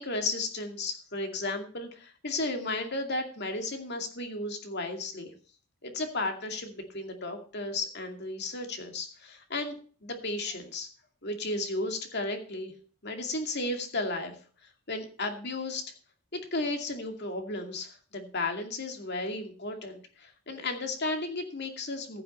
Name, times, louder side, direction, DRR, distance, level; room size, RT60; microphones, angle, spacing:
voice 1, 0.0-5.3 5.8-10.9 11.2-12.7 13.0-14.3 14.6-15.8 16.3-22.2, left 2 dB, 50° left, 4 dB, 2.4 m, -34 dB
15.5 x 7.8 x 4.3 m, 0.41 s
head